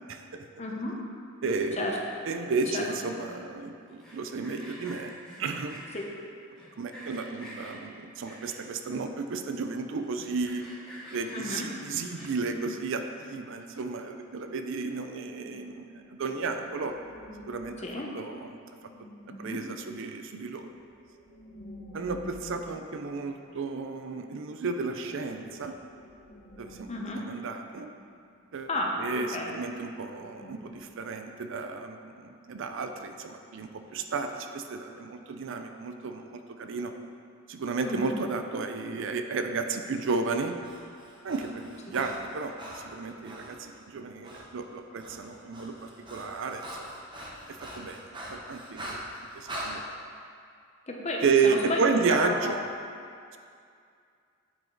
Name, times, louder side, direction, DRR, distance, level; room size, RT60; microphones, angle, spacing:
voice 1, 0.1-0.5 1.4-5.1 5.4-5.8 6.8-10.7 11.1-17.0 17.5-17.8 18.1-18.6 19.3-20.7 21.9-25.8 26.6-26.9 27.2-27.9 28.5-28.7 29.0-36.9 37.5-40.6 41.2-46.9 47.5-48.0 48.3-49.0 49.3-49.9 51.2-52.6, right 4 dB, 60° right, 6 dB, 0.5 m, -32 dB
voice 2, 0.6-1.0 1.8-1.9 2.7-2.9 5.9-6.0 11.3-11.7 17.8-18.1 19.3-19.6 26.9-27.2 28.7-29.0 29.3-29.5 37.8-38.1 50.9-51.8 52.1-52.4, left 2 dB, 30° left, -1 dB, 0.9 m, -32 dB
Sawing, 3.9-6.0 6.6-7.7 8.2-8.8 9.3-9.4 9.5-9.6 10.0-12.5, equal, 5° left, 1.9 m, -47 dB
sound 1, 15.0-24.0 24.2-24.3 24.7-28.8 29.2-29.3 30.1-30.8, left 1 dB, 85° left, 1.3 m, -50 dB
Breathing, 40.4-43.6 44.2-44.5 44.8-49.7, right 1 dB, 25° right, 1.0 m, -42 dB
9.0 x 5.0 x 3.9 m, 2.3 s
head